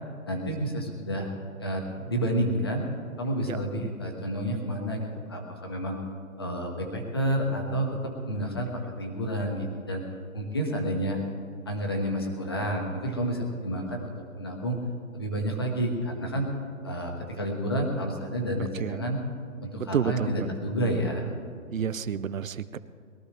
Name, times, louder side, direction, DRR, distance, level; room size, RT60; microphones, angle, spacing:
voice 1, 0.3-1.3 1.6-2.8 3.2-6.0 6.4-10.0 10.3-11.2 11.7-14.8 15.1-16.5 16.8-19.2 19.6-21.2, equal, 20° left, 2 dB, 1.0 m, -30 dB
voice 2, 19.8-20.5 21.7-22.8, right 7 dB, 70° right, 14 dB, 0.7 m, -29 dB
21.5 x 14.0 x 3.3 m, 2.2 s
hypercardioid pair, 175°, 42 cm